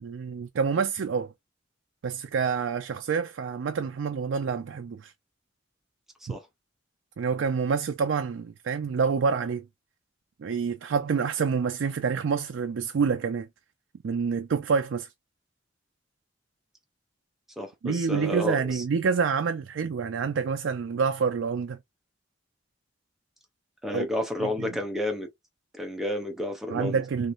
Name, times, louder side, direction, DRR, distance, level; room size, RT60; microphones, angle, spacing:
voice 1, 0.0-1.3 2.0-5.1 6.3-6.4 7.2-9.6 10.4-13.5 14.0-15.1 17.8-21.8 23.9-24.1 24.4-24.7 26.7-27.3, right 5 dB, 75° right, 0.4 m, -27 dB
voice 2, 17.6-18.8 23.8-25.3 25.7-27.0, left 1 dB, ahead, 0.7 m, -31 dB
3.2 x 3.1 x 2.4 m
head